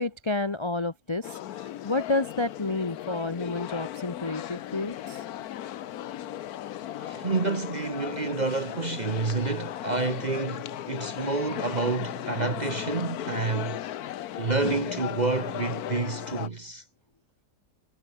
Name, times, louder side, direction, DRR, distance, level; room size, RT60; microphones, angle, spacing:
voice 1, 0.0-5.2, left 2 dB, 25° left, 0.6 m, -30 dB
sound 1, 1.2-16.5, left 12 dB, 65° left, 1.2 m, -36 dB
voice 2, 7.0-13.8 14.4-16.8, right 3 dB, 30° right, 0.9 m, -29 dB
omnidirectional pair, 1.9 m